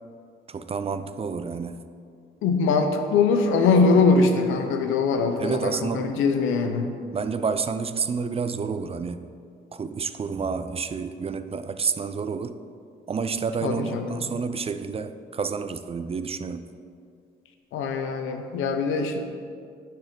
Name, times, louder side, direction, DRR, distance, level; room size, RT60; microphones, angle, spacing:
voice 1, 0.5-1.8 5.4-6.2 7.1-9.3 9.7-12.6 13.1-16.7, right 5 dB, 30° right, 11 dB, 0.4 m, -29 dB
voice 2, 2.4-6.9 13.6-14.3 17.7-19.2, left 4 dB, 85° left, 6 dB, 0.8 m, -22 dB
10.5 x 4.6 x 5.1 m, 2.3 s
cardioid pair, 90°, 20 cm